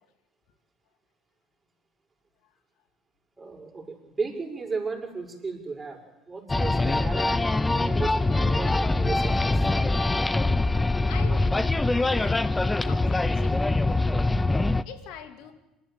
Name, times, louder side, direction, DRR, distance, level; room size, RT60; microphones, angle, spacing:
voice 1, 3.4-6.0 6.3-9.7, right 4 dB, 25° right, 1 dB, 6.5 m, -35 dB
sound 1, 6.5-14.8, left 2 dB, 15° left, 0.9 m, -23 dB
voice 2, 11.0-14.0 14.8-15.5, left 9 dB, 70° left, 8 dB, 2.5 m, -44 dB
26.5 x 12.5 x 9.0 m, 0.99 s
hypercardioid pair, 65°, 0 cm